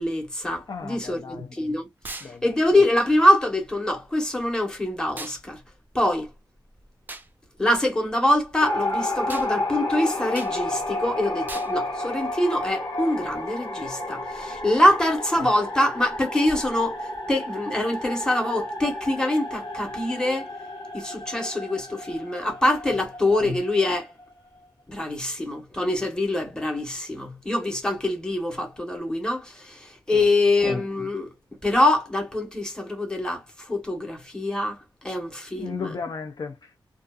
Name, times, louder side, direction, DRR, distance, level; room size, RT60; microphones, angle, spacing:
voice 1, 0.0-1.9 2.2-5.6 5.9-6.3 7.6-17.0 17.3-20.5 20.9-24.1 24.9-31.3 31.6-35.9, left 1 dB, 10° left, 1.2 m, -24 dB
voice 2, 0.7-1.5 2.2-2.6 22.9-23.0 30.1-30.3 35.5-36.8, left 5 dB, 55° left, 0.5 m, -36 dB
sound 1, 2.0-2.3 5.2-5.4 7.1-7.3 9.3-9.5 10.3-10.5 11.5-11.7, right 2 dB, 25° right, 0.4 m, -37 dB
sound 2, 8.6-24.5, left 1 dB, 70° left, 1.0 m, -32 dB
2.6 x 2.3 x 2.2 m
wide cardioid pair, 100°, 8 cm